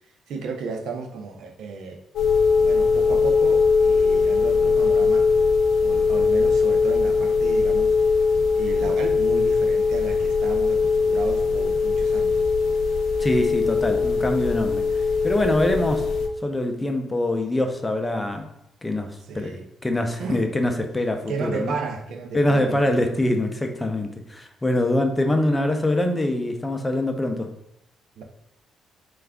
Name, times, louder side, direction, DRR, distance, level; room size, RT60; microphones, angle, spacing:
voice 1, 0.3-2.0 2.6-5.3 5.8-8.0 8.6-12.4 19.3-19.7 20.2-20.4 21.3-23.2 28.2-28.3, right 4 dB, 75° right, 4 dB, 0.5 m, -33 dB
sound 1, 2.1-16.3, left 5 dB, 75° left, 0.5 m, -20 dB
voice 2, 13.2-14.8 15.2-16.1 16.4-18.5 18.8-21.7 22.3-27.5, left 1 dB, 15° left, 5 dB, 0.5 m, -24 dB
3.3 x 2.4 x 3.5 m, 0.78 s
cardioid pair, 90°, 0 cm